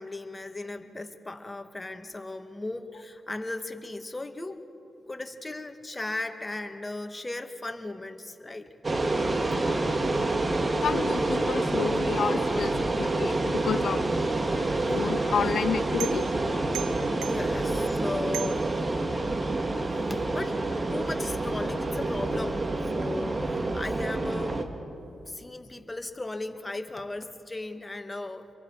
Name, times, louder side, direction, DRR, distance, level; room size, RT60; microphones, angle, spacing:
voice 1, 0.0-4.6 5.1-8.7 14.8-14.9 17.3-18.7 20.1-20.6 20.9-22.6 22.9-24.6 25.3-28.5, left 2 dB, 25° left, 6 dB, 2.0 m, -36 dB
sound 1, 8.8-24.6, right 2 dB, 40° right, 2.1 m, -27 dB
voice 2, 10.8-14.0 14.6-16.2, left 7 dB, 70° left, 12 dB, 0.6 m, -30 dB
sound 2, 14.8-19.5, right 13 dB, 90° right, 0.6 m, -42 dB
29.5 x 23.0 x 4.9 m, 2.7 s
hypercardioid pair, 40°, 0 cm